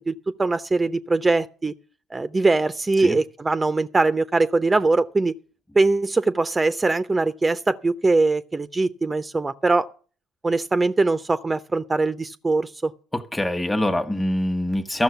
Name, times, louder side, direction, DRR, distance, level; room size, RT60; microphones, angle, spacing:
voice 1, 0.0-1.7 2.1-5.3 5.7-9.9 10.4-12.9, right 3 dB, 20° right, 0.8 m, -22 dB
voice 2, 13.1-15.0, left 1 dB, 10° left, 1.4 m, -24 dB
13.5 x 6.4 x 8.1 m
hypercardioid pair, 60°, 0 cm